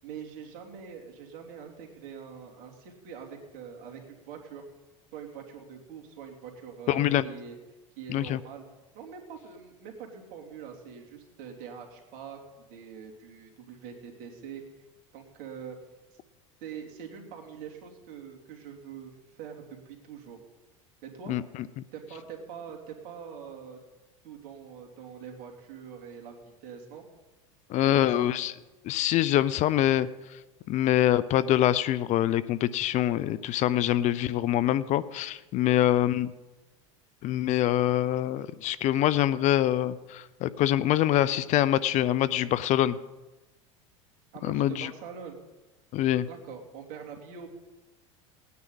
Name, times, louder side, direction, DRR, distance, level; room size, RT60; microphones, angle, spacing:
voice 1, 0.0-4.6 5.1-7.6 8.0-8.6 8.9-12.4 12.7-14.8 15.1-15.8 16.6-20.4 21.0-21.4 21.9-23.8 24.2-27.0 27.8-28.2 35.6-36.0 44.3-45.4 46.3-47.5, right 7 dB, 60° right, 1 dB, 2.9 m, -44 dB
voice 2, 6.9-7.3 8.1-8.4 21.3-21.8 27.7-28.5 28.8-30.4 30.7-36.3 37.2-43.0 44.4-44.9 45.9-46.3, left 12 dB, 45° left, 18 dB, 0.6 m, -25 dB
19.0 x 9.5 x 4.0 m, 1.1 s
hypercardioid pair, 95°, 16 cm